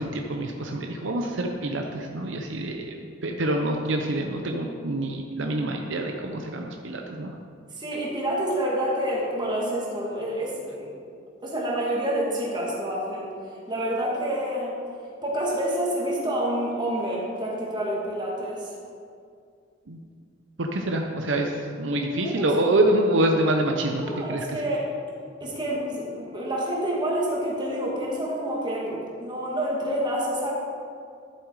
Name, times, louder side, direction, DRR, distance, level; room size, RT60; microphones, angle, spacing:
voice 1, 0.0-7.3 19.9-20.0 20.6-21.5 21.8-24.0 24.3-24.4, right 1 dB, 70° right, 2 dB, 0.8 m, -26 dB
voice 2, 7.7-10.9 11.4-13.3 13.7-14.8 15.2-18.7 22.0-22.7 24.0-24.9 25.4-30.5, right 1 dB, 25° right, -4 dB, 2.3 m, -28 dB
12.5 x 7.6 x 4.8 m, 2.3 s
head